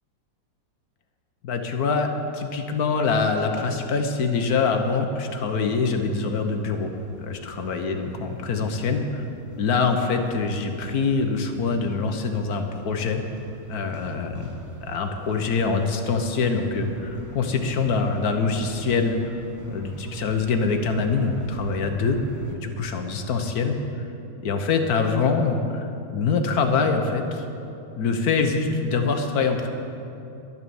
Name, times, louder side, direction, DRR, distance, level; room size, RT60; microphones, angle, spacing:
voice 1, 1.4-6.9 7.2-9.2 9.6-13.2 13.7-14.5 14.8-19.4 19.7-22.2 22.5-23.8 24.4-25.9 26.1-27.4 28.0-29.7, left 4 dB, 55° left, 5 dB, 1.2 m, -24 dB
sound 1, 6.3-22.6, right 1 dB, 15° right, 0.6 m, -44 dB
11.0 x 11.0 x 7.0 m, 2.7 s
omnidirectional pair, 2.3 m